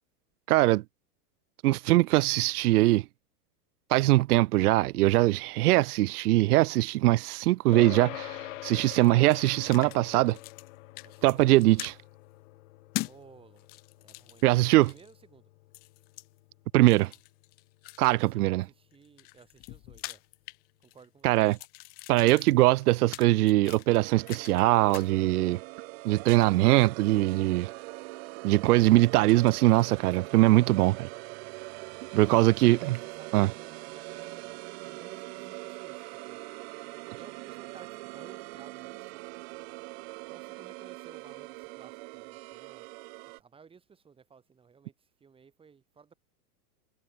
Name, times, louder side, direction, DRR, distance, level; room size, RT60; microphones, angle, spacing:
voice 1, 0.5-0.8 1.6-3.0 3.9-10.4 11.2-11.9 14.4-14.9 16.7-17.1 18.0-18.6 21.2-21.6 22.1-25.6 26.0-27.7 28.4-31.1 32.1-33.0 33.3-33.5, right 18 dB, 70° right, 0.6 m, -22 dB
sound 1, 7.7-17.4, left 18 dB, 50° left, 3.2 m, -45 dB
sound 2, 9.0-10.0 10.3-10.7 11.0-12.0 12.9-13.2 13.6-15.1 15.7-16.3 16.9-18.3 18.9-21.1 21.4-24.6 24.9-25.1, left 24 dB, 20° left, 0.7 m, -42 dB
voice 2, 11.0-11.5 13.0-13.7 14.0-15.5 18.2-20.2 20.8-21.5 32.1-36.4 37.1-39.2 40.3-42.9 43.4-46.1, right 6 dB, 10° right, 4.4 m, -56 dB
sound 3, 23.9-43.4, right 27 dB, 40° right, 2.5 m, -42 dB
supercardioid pair, 160°, 47 cm